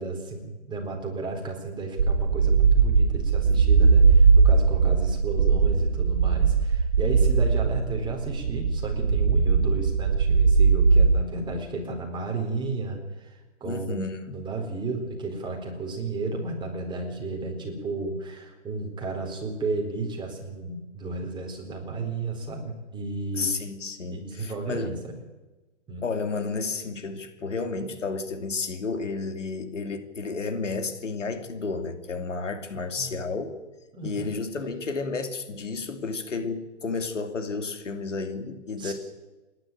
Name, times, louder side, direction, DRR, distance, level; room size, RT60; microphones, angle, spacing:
voice 1, 0.0-14.0 14.3-23.5 24.1-25.2 25.9-26.1 33.0-33.1 33.9-34.3 38.8-38.9, right 3 dB, 10° right, 1 dB, 4.2 m, -33 dB
sound 1, 2.0-11.2, right 5 dB, 70° right, 2.2 m, -20 dB
voice 2, 13.6-14.4 23.3-25.0 26.0-33.5 34.0-38.9, left 4 dB, 85° left, 7 dB, 2.9 m, -32 dB
28.0 x 11.5 x 9.2 m, 1.2 s
hypercardioid pair, 135°, 36 cm